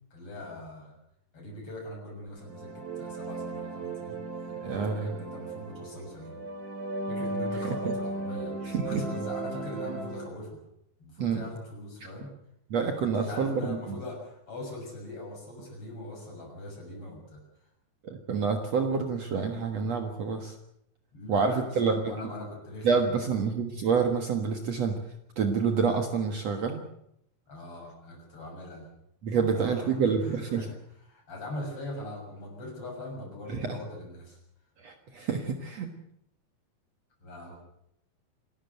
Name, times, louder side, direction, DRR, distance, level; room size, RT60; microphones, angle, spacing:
voice 1, 0.1-1.0 1.3-6.4 7.1-10.6 11.0-12.3 13.0-17.4 21.1-23.3 27.5-28.9 29.3-30.8 31.1-34.4 37.2-37.5, left 1 dB, 40° left, 1 dB, 7.6 m, -41 dB
sound 1, 2.4-10.3, right 2 dB, 30° right, 2.8 m, -36 dB
voice 2, 4.6-5.1 7.6-7.9 8.6-9.0 11.2-11.4 12.7-14.0 18.0-20.6 21.3-22.1 22.8-25.0 25.4-26.8 29.2-30.7 33.5-33.8 34.8-35.9, right 5 dB, 55° right, 5 dB, 2.4 m, -28 dB
27.5 x 13.0 x 7.9 m, 0.75 s
omnidirectional pair, 4.1 m